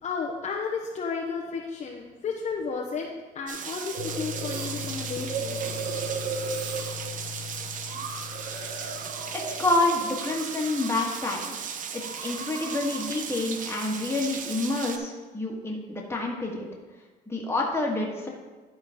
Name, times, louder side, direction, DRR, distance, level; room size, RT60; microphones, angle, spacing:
voice 1, 0.0-3.1 3.3-6.0, left 5 dB, 40° left, -1 dB, 0.9 m, -33 dB
Rain, 3.5-15.0, right 7 dB, 50° right, 0.7 m, -37 dB
sound 1, 3.9-11.4 11.6-13.1, right 5 dB, 75° right, 1.2 m, -37 dB
sound 2, 4.0-9.8, left 10 dB, 85° left, 0.8 m, -40 dB
voice 2, 9.3-11.6 11.9-16.7 17.3-18.3, left 2 dB, 15° left, -1 dB, 1.7 m, -28 dB
11.5 x 3.9 x 5.1 m, 1.3 s
cardioid pair, 110°, 17 cm